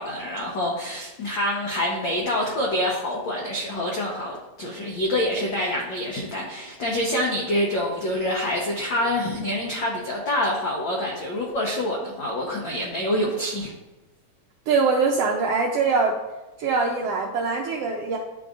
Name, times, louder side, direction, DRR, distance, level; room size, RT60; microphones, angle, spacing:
voice 1, 0.0-13.7, left 1 dB, 85° left, -2 dB, 1.0 m, -26 dB
voice 2, 14.7-16.1 16.6-18.2, right 4 dB, 80° right, 0 dB, 1.4 m, -23 dB
10.5 x 3.8 x 2.4 m, 1.1 s
omnidirectional pair, 3.3 m